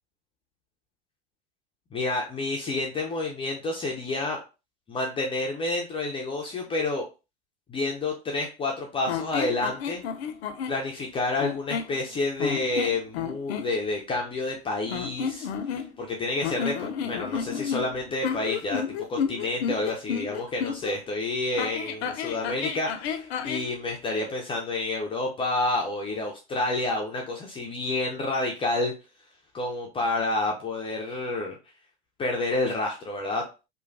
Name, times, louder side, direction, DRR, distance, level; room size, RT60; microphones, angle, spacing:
voice 1, 1.9-4.4 4.9-7.0 7.7-10.0 10.7-15.5 16.0-18.8 19.1-28.9 29.5-31.6 32.2-33.4, left 2 dB, 15° left, 0 dB, 0.4 m, -29 dB
sound 1, 9.1-10.8 11.4-12.0 12.4-13.7 14.9-16.1 16.4-21.0 21.6-23.7, left 7 dB, 65° left, 0.6 m, -31 dB
3.0 x 2.1 x 2.6 m, 0.30 s
hypercardioid pair, 100°, 34 cm